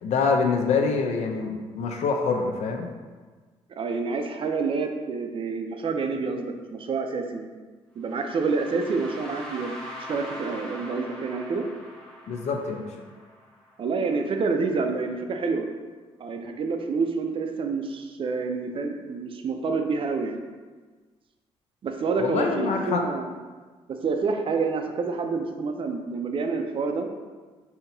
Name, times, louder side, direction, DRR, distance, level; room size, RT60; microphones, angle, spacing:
voice 1, 0.0-2.9 12.3-12.9 22.2-23.0, left 4 dB, 75° left, 3 dB, 0.6 m, -25 dB
voice 2, 3.8-7.6 8.0-9.8 10.1-11.7 13.8-15.7 16.2-20.4 21.8-23.3 23.9-27.1, right 4 dB, 50° right, 5 dB, 0.5 m, -28 dB
sound 1, 8.0-14.0, equal, 5° left, 1.0 m, -42 dB
5.6 x 2.8 x 2.7 m, 1.4 s
cardioid pair, 85°, 12 cm